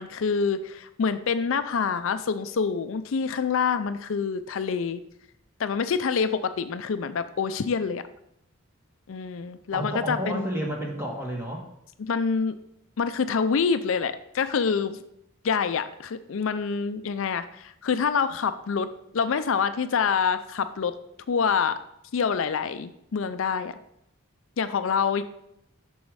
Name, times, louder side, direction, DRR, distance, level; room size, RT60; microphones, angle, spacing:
voice 1, 0.0-5.0 5.6-8.0 9.1-10.5 12.1-12.6 13.0-15.0 15.4-18.9 19.1-20.9 21.3-21.8 22.1-23.8 24.6-25.2, left 6 dB, 65° left, 11 dB, 0.4 m, -26 dB
voice 2, 9.7-11.7, equal, 10° right, 0 dB, 1.5 m, -31 dB
7.2 x 6.2 x 4.8 m, 0.78 s
head